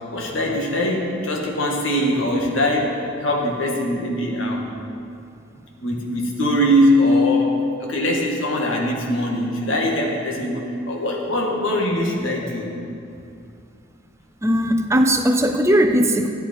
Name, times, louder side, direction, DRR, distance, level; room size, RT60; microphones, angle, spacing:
voice 1, 0.1-4.8 5.8-12.7, left 1 dB, 90° left, 0 dB, 1.8 m, -21 dB
voice 2, 14.4-16.3, equal, 15° right, 6 dB, 0.5 m, -18 dB
13.5 x 9.4 x 4.4 m, 2.5 s
head